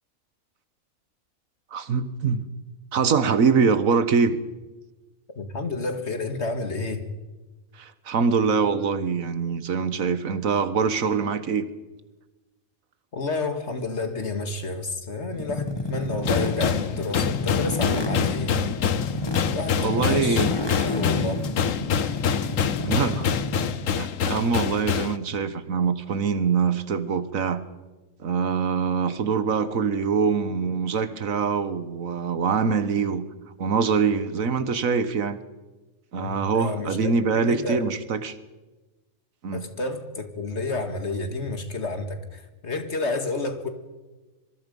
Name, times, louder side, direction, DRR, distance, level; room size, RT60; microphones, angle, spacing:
voice 1, 1.7-2.4 2.9-4.4 7.8-11.7 19.8-20.5 22.8-23.3 24.0-27.6 28.2-33.2 33.6-35.4 36.1-38.4 39.4-39.6, right 5 dB, 90° right, 1.7 m, -24 dB
voice 2, 5.4-7.1 13.1-18.6 19.5-21.4 36.2-37.9 39.5-43.7, left 3 dB, 55° left, 2.3 m, -30 dB
sound 1, 15.3-23.9, left 2 dB, 20° left, 1.4 m, -30 dB
sound 2, 16.2-25.2, left 8 dB, 75° left, 1.3 m, -26 dB
25.5 x 24.0 x 5.4 m
omnidirectional pair, 1.4 m